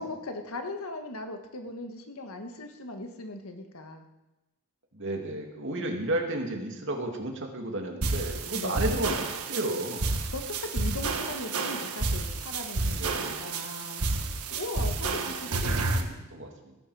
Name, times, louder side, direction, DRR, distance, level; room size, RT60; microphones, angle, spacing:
voice 1, 0.0-4.1 5.8-6.0 8.5-8.8 10.3-13.0 13.4-14.0 14.5-15.8, left 2 dB, 75° left, 5 dB, 1.6 m, -38 dB
voice 2, 4.9-9.1 9.5-10.0 12.9-13.4 15.3-15.6 15.9-16.7, right 1 dB, 55° right, 2 dB, 2.4 m, -33 dB
sound 1, 8.0-16.0, right 3 dB, 85° right, 1.4 m, -30 dB
18.0 x 11.5 x 5.0 m, 1.0 s
head